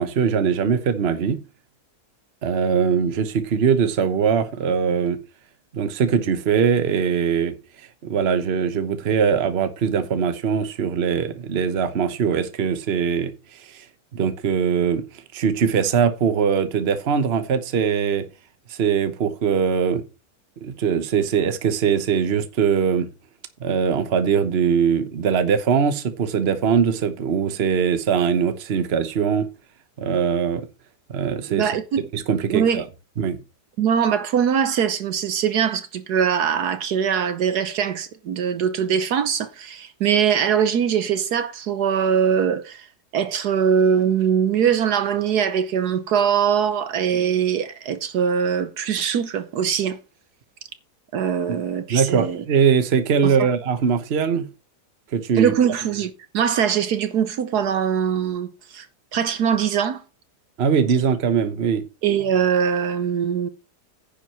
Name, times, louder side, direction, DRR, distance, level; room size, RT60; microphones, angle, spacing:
voice 1, 0.0-1.4 2.4-5.2 5.7-7.5 8.0-13.8 14.1-18.2 18.7-20.0 20.6-23.1 23.6-29.5 30.0-30.7 31.1-31.7 32.1-32.8 33.2-33.4 51.5-51.6 51.9-54.5 55.1-55.5 60.6-61.8, right 7 dB, 40° right, 1.2 m, -21 dB
voice 2, 31.5-32.0 32.5-32.8 33.8-42.9 43.1-50.0 51.1-52.4 53.2-53.3 55.4-58.9 59.1-60.0 62.0-63.5, right 8 dB, 70° right, 1.4 m, -22 dB
10.5 x 4.7 x 5.8 m
omnidirectional pair, 1.8 m